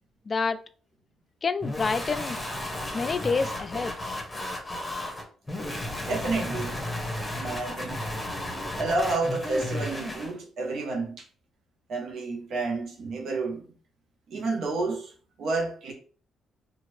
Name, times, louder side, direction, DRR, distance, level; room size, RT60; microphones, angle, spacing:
voice 1, 0.3-0.6 1.4-2.4 2.9-4.0, left 4 dB, 35° left, 0.3 m, -27 dB
sound 1, 1.6-10.3, left 1 dB, 15° left, 0.9 m, -34 dB
voice 2, 6.1-6.8 7.3-8.0 8.8-11.2 11.9-13.7 14.3-15.1 15.4-15.9, right 3 dB, 70° right, 0.8 m, -30 dB
2.8 x 2.4 x 3.1 m
cardioid pair, 90°, 0 cm